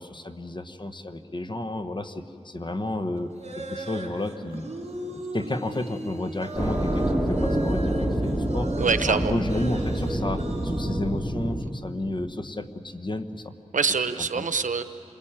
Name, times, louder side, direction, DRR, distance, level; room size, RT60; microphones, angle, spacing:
voice 1, 0.0-4.7 5.1-8.8 9.1-13.5 14.3-14.4, left 2 dB, 40° left, 8 dB, 1.2 m, -32 dB
sound 1, 3.2-11.0, right 1 dB, 60° right, 3.8 m, -37 dB
sound 2, 6.5-11.6, right 1 dB, 5° right, 2.4 m, -26 dB
voice 2, 8.8-9.3 13.7-14.8, right 5 dB, 90° right, 11 dB, 0.9 m, -24 dB
28.0 x 21.5 x 8.9 m, 2.7 s
wide cardioid pair, 80°, 13 cm